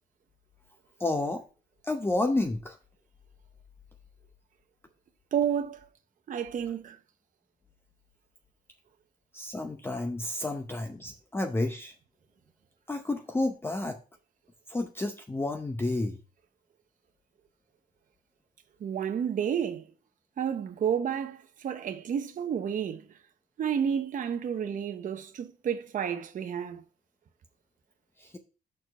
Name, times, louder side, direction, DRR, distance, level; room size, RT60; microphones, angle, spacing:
voice 1, 1.0-1.4 1.8-2.8 9.3-11.9 12.9-14.0 14.7-16.2 28.2-28.4, left 2 dB, 15° left, 0.7 m, -30 dB
voice 2, 5.3-5.9 6.3-7.0 18.8-19.9 20.4-23.0 23.6-26.8, right 8 dB, 50° right, 0.8 m, -30 dB
6.3 x 4.4 x 5.7 m
cardioid pair, 110°, 17 cm